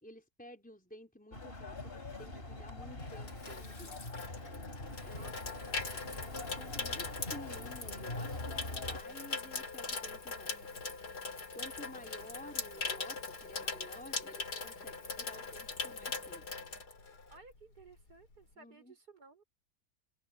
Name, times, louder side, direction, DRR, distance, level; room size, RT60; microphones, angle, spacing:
voice 1, 0.0-3.9 5.0-6.0 6.6-10.5 11.5-16.4 18.6-18.9, left 1 dB, 5° left, 4.3 m, -53 dB
sound 1, 1.3-9.0, left 2 dB, 35° left, 4.2 m, -44 dB
Water tap faucet / Sink (filling or washing), 2.5-17.5 17.8-18.1, left 4 dB, 85° left, 3.9 m, -41 dB
voice 2, 5.0-6.1 10.3-10.7 17.3-19.4, right 3 dB, 75° right, 5.7 m, -59 dB
open air
omnidirectional pair, 1.7 m